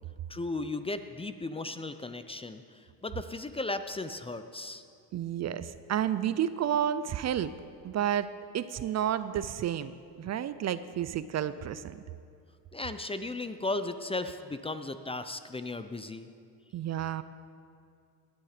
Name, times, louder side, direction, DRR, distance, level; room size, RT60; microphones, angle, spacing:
voice 1, 0.3-4.8 12.7-16.3, left 2 dB, 15° left, 10 dB, 0.5 m, -36 dB
voice 2, 5.1-7.5 7.8-9.9 10.2-12.0 16.7-17.2, right 10 dB, 40° right, 14 dB, 0.5 m, -31 dB
17.5 x 9.7 x 5.0 m, 2.4 s
supercardioid pair, 95°, 41 cm